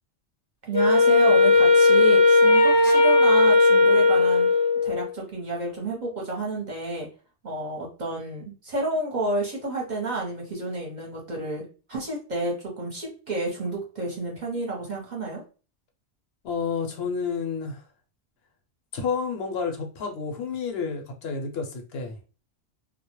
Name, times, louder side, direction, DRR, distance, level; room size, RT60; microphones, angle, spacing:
voice 1, 0.6-4.5 4.8-7.1 7.4-11.6 11.9-15.4, right 2 dB, 45° right, -1 dB, 0.8 m, -30 dB
Wind instrument woodwind instrument, 0.7-5.1, left 3 dB, 20° left, 0.3 m, -17 dB
voice 2, 16.4-17.8 18.9-22.2, left 5 dB, 70° left, 3 dB, 0.8 m, -30 dB
2.2 x 2.0 x 2.9 m, 0.35 s
omnidirectional pair, 1.1 m